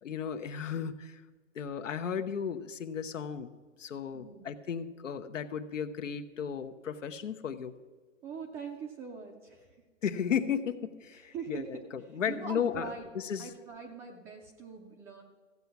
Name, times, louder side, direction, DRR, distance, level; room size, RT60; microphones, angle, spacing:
voice 1, 0.0-1.2 1.5-7.7 10.0-12.9 13.1-13.5, left 7 dB, 90° left, 9 dB, 1.0 m, -35 dB
voice 2, 4.1-4.5 8.2-9.8 11.1-11.8 12.3-13.1 13.4-15.2, right 6 dB, 5° right, 1 dB, 0.3 m, -43 dB
14.5 x 8.3 x 5.8 m, 1.4 s
hypercardioid pair, 140°, 37 cm